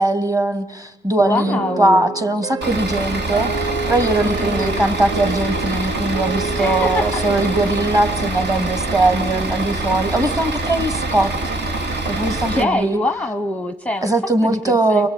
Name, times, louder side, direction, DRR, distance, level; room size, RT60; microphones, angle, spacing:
voice 1, 0.0-11.3 12.0-13.0 14.0-15.1, right 2 dB, 20° right, 8 dB, 2.4 m, -20 dB
voice 2, 1.2-2.1 4.4-4.9 6.6-7.3 12.5-14.1 14.4-15.1, left 2 dB, 5° left, 9 dB, 0.9 m, -24 dB
sound 1, 1.4-10.0, right 4 dB, 85° right, 1.5 m, -30 dB
Bus / Idling, 2.6-12.6, right 2 dB, 65° right, 2.7 m, -24 dB
23.0 x 21.5 x 9.1 m, 0.98 s
supercardioid pair, 65°, 19 cm